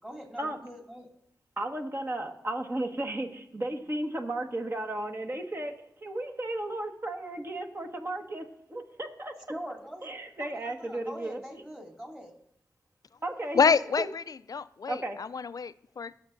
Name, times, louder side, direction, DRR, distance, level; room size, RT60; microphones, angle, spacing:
voice 1, 0.0-1.1 9.5-12.3, equal, 10° right, -1 dB, 3.1 m, -43 dB
voice 2, 1.6-9.3 10.0-11.4 13.2-14.1 14.9-15.2, right 1 dB, 35° right, 2 dB, 1.6 m, -34 dB
voice 3, 13.5-14.2 14.5-16.1, left 5 dB, 55° left, 17 dB, 0.4 m, -27 dB
20.0 x 7.2 x 2.6 m, 0.78 s
cardioid pair, 40°, 7 cm